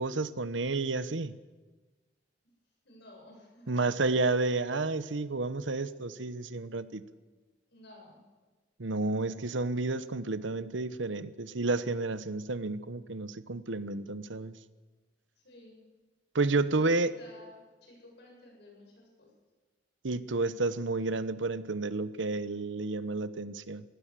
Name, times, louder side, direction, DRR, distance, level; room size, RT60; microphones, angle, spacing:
voice 1, 0.0-1.3 3.7-7.0 8.8-14.5 16.3-17.1 20.0-23.8, right 3 dB, 85° right, 15 dB, 1.0 m, -31 dB
voice 2, 2.8-3.9 7.7-8.2 15.4-15.8 16.7-19.3, left 1 dB, 65° left, 0 dB, 7.8 m, -53 dB
22.5 x 16.5 x 7.6 m, 1.3 s
head